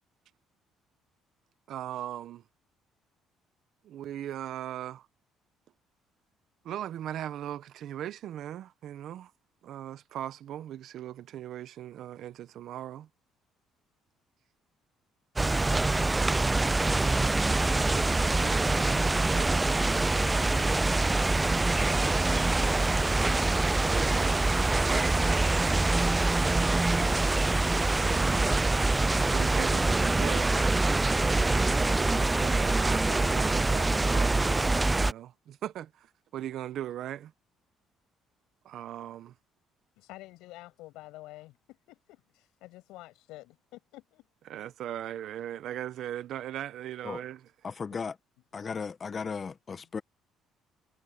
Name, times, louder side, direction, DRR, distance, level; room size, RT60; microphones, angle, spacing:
voice 1, 1.7-2.4 3.8-5.1 6.6-9.3 9.6-13.1 18.0-19.6 21.3-21.9 23.7-25.9 27.9-28.5 29.3-30.6 31.4-36.1 36.3-37.3 38.6-39.3 44.5-47.4, right 11 dB, 65° right, 1.1 m, -39 dB
sound 1, 15.4-35.1, right 2 dB, 20° right, 0.3 m, -25 dB
voice 2, 40.0-44.2, left 18 dB, 80° left, 7.7 m, -49 dB
voice 3, 47.6-48.2 48.5-50.0, left 5 dB, 40° left, 1.3 m, -36 dB
supercardioid pair, 70°, 0 cm